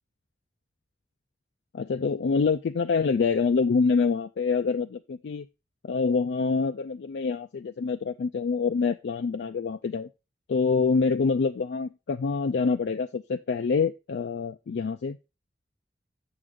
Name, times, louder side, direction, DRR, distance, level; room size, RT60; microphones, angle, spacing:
voice 1, 1.7-5.5 5.8-10.1 10.5-15.3, left 5 dB, 80° left, 8 dB, 0.4 m, -26 dB
7.7 x 6.6 x 3.6 m, 0.28 s
head